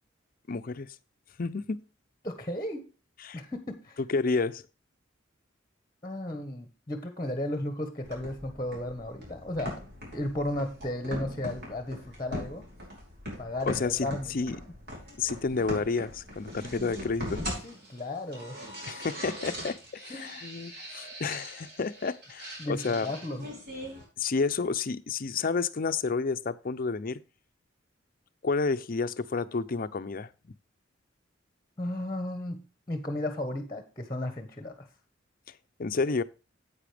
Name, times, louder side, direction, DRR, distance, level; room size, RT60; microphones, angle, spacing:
voice 1, 0.5-0.9 1.4-1.8 3.2-3.4 4.1-4.6 13.6-14.6 15.2-17.4 18.9-23.1 24.2-27.2 28.4-30.3 35.8-36.2, left 4 dB, 45° left, 0.5 m, -30 dB
voice 2, 2.2-2.8 3.3-4.0 6.0-9.8 10.1-12.7 13.4-14.4 17.6-18.7 20.1-20.4 22.6-23.5 31.8-32.6 32.9-34.9, left 1 dB, 20° left, 1.2 m, -34 dB
sound 1, 8.0-24.0, equal, 55° right, 5.1 m, -41 dB
10.0 x 8.5 x 3.4 m
head